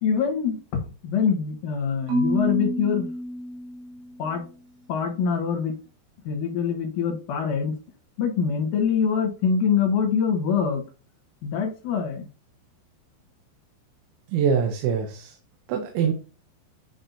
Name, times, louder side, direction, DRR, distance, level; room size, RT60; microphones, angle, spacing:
voice 1, 0.0-3.1 4.2-4.4 4.9-5.8 6.3-7.7 8.2-10.8 11.4-12.3, left 6 dB, 65° left, 3 dB, 2.3 m, -24 dB
Marimba xylophone / Wood, 2.1-4.3, equal, 65° right, 3.5 m, -28 dB
voice 2, 14.3-15.4 15.7-16.1, right 7 dB, 85° right, 3 dB, 3.2 m, -24 dB
9.8 x 4.4 x 2.7 m, 0.35 s
omnidirectional pair, 5.3 m